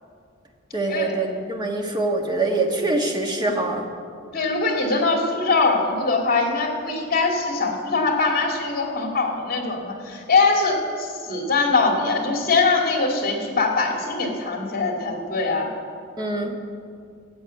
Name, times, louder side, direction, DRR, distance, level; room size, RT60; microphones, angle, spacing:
voice 1, 0.7-3.8 16.2-16.6, right 2 dB, 20° right, 2 dB, 1.5 m, -24 dB
voice 2, 4.3-15.7, left 3 dB, 50° left, 1 dB, 2.5 m, -22 dB
13.5 x 8.6 x 8.3 m, 2.4 s
head